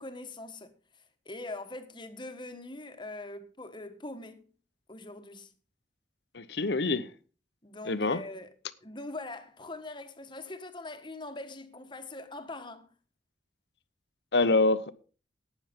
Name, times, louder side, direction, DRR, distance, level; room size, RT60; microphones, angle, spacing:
voice 1, 0.0-4.5 4.9-5.5 7.6-8.5 8.8-12.9, left 2 dB, 25° left, 1.3 m, -42 dB
voice 2, 6.3-7.1 7.8-8.2 14.3-14.9, left 3 dB, 70° left, 0.9 m, -26 dB
12.0 x 9.3 x 5.1 m
head